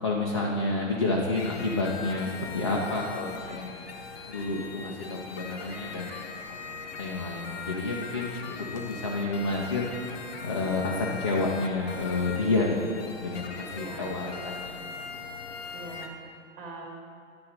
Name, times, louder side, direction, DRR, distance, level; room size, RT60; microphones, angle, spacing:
voice 1, 0.0-3.7 4.3-6.2 7.0-9.9 10.4-14.8, left 2 dB, 25° left, -4 dB, 0.3 m, -29 dB
sound 1, 1.3-16.1, left 5 dB, 50° left, 0.7 m, -40 dB
sound 2, 4.8-12.2, equal, 5° left, 1.0 m, -50 dB
voice 2, 13.7-14.2 15.7-16.8, right 2 dB, 20° right, -2 dB, 1.4 m, -43 dB
9.3 x 3.8 x 5.7 m, 2.2 s
hypercardioid pair, 145°, 40 cm